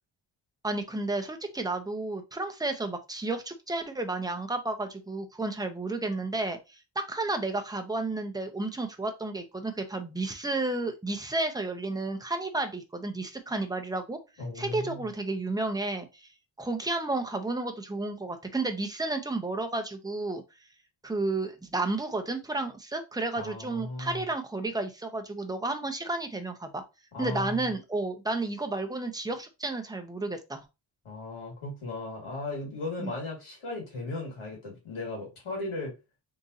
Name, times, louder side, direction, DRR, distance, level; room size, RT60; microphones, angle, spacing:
voice 1, 0.6-6.8 7.1-14.2 14.6-16.3 16.6-20.4 21.0-26.8 27.2-30.6 33.0-33.1, right 2 dB, 10° right, 0.6 m, -32 dB
voice 2, 14.4-15.0 23.3-24.2 27.1-27.6 31.0-35.9, left 2 dB, 85° left, 2.1 m, -36 dB
3.7 x 2.6 x 4.0 m
wide cardioid pair, 155°, 48 cm